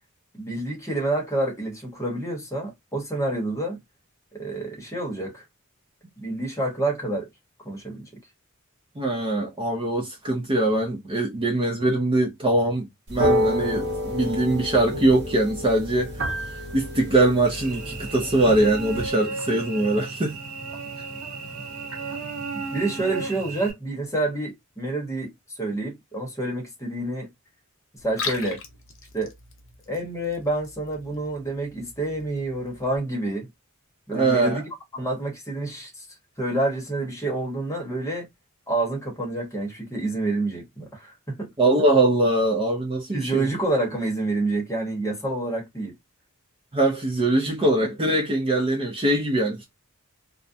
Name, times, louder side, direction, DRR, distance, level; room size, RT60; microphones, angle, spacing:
voice 1, 0.3-3.8 4.3-5.4 6.2-7.3 7.6-8.1 22.5-27.3 28.0-28.6 29.1-29.3 29.9-33.5 34.1-34.6 34.9-36.1 36.4-38.3 38.7-41.5 43.1-45.9, right 2 dB, 15° left, 0.9 m, -28 dB
voice 2, 9.0-16.1 16.4-20.4 34.1-34.6 41.6-43.5 46.7-49.7, right 2 dB, 25° right, 0.5 m, -22 dB
sound 1, 13.1-19.1, equal, 55° right, 0.9 m, -29 dB
Cricket / Buzz, 17.5-23.7, right 4 dB, 90° right, 0.8 m, -34 dB
Liquid, 28.0-33.0, left 5 dB, 60° left, 0.7 m, -39 dB
2.4 x 2.1 x 2.5 m
head